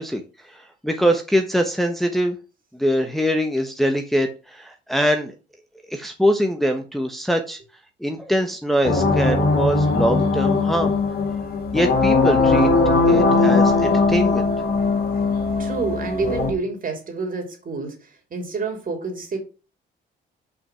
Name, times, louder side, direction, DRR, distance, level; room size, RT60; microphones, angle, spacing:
voice 1, 0.0-2.4 2.8-5.3 5.9-7.6 8.0-10.9 11.7-12.7 13.1-14.5, equal, ahead, 4 dB, 1.1 m, -23 dB
sound 1, 8.8-16.5, left 3 dB, 50° left, 2.6 m, -19 dB
voice 2, 15.6-19.4, right 3 dB, 45° right, 3 dB, 3.2 m, -28 dB
5.8 x 5.3 x 5.6 m, 0.33 s
cardioid pair, 90°, 20 cm